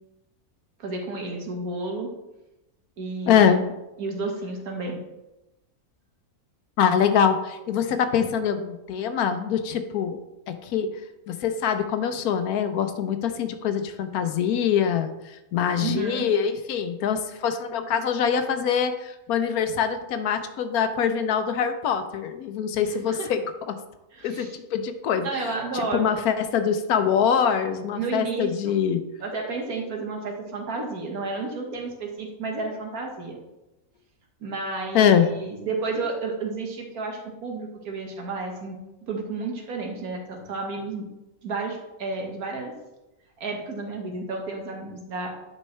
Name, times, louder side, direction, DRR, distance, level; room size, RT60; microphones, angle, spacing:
voice 1, 0.8-2.1 3.0-3.6 4.0-5.0 15.8-16.3 22.8-23.3 24.1-24.5 25.2-26.1 28.0-28.8 29.2-33.4 34.4-41.1 41.4-42.7 43.4-45.3, right 3 dB, 80° right, 1 dB, 1.8 m, -31 dB
voice 2, 3.3-3.6 6.8-10.2 10.5-10.9 11.3-23.8 24.2-29.0 34.9-35.3, left 7 dB, 80° left, 9 dB, 1.2 m, -24 dB
9.8 x 5.3 x 3.2 m, 0.98 s
omnidirectional pair, 1.5 m